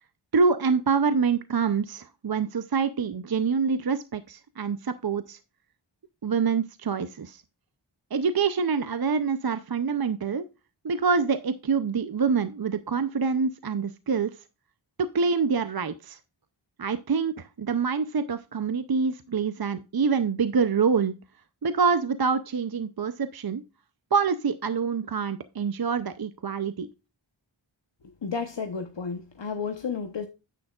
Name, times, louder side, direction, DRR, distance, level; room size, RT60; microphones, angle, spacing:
voice 1, 0.3-5.4 6.2-7.4 8.1-10.4 10.8-14.3 15.0-16.2 16.8-21.1 21.6-23.6 24.1-26.9, right 5 dB, 50° right, 0.6 m, -26 dB
voice 2, 28.0-30.3, left 5 dB, 65° left, 0.9 m, -32 dB
9.8 x 8.5 x 2.4 m
wide cardioid pair, 50°, 47 cm